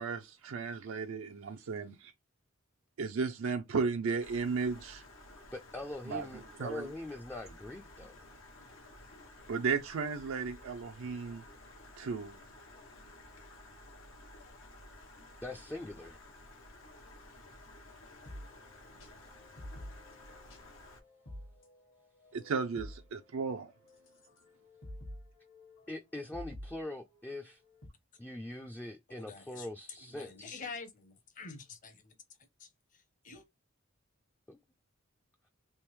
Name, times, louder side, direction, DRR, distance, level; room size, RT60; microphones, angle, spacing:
voice 1, 0.0-2.1 3.0-5.0 6.1-6.9 9.5-11.4 12.0-12.3 22.3-23.7, right 5 dB, 80° right, 0.4 m, -35 dB
Stream, 4.2-21.0, left 1 dB, 90° left, 1.0 m, -54 dB
voice 2, 5.5-8.2 15.4-16.2 25.9-27.6 28.2-30.6 34.5-34.6, left 2 dB, 10° left, 0.3 m, -43 dB
sound 1, 18.3-27.9, left 1 dB, 65° left, 1.3 m, -50 dB
voice 3, 29.1-29.7 30.0-32.1 32.6-33.4, left 4 dB, 40° left, 0.8 m, -47 dB
3.5 x 2.9 x 3.1 m
head